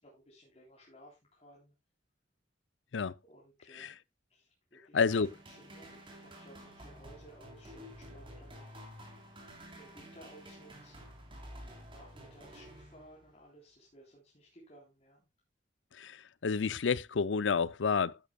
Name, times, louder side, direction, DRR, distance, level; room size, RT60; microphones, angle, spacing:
voice 1, 0.0-1.7 3.3-3.9 4.3-5.0 5.5-9.4 9.8-11.1 11.9-15.3, right 1 dB, 35° left, 3.6 m, -58 dB
voice 2, 4.9-5.3 15.9-18.2, left 5 dB, 80° left, 0.5 m, -30 dB
sound 1, 5.1-13.4, equal, 30° right, 3.5 m, -51 dB
11.5 x 10.5 x 2.2 m
head